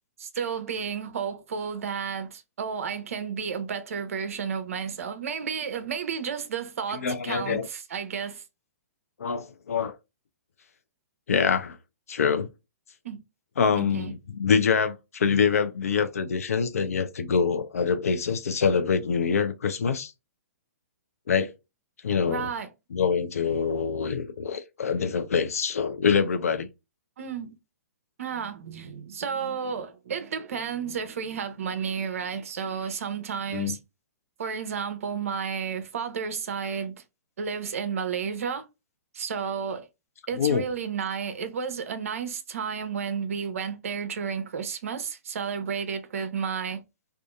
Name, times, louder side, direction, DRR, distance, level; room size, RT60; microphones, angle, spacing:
voice 1, 0.2-8.4 13.0-13.2 13.7-14.1 22.3-22.7 27.2-27.6 28.2-33.8 34.4-37.0 37.4-38.7 39.1-39.9 40.3-46.8, right 6 dB, 65° right, 0.6 m, -32 dB
voice 2, 6.9-7.7 9.2-9.9 11.3-11.8 12.1-12.5 13.6-20.1 21.3-21.5 22.0-22.5 22.9-26.7 33.5-33.7 40.3-40.6, left 6 dB, 70° left, 0.5 m, -25 dB
2.6 x 2.4 x 2.3 m
figure-of-eight pair, 120°, 8 cm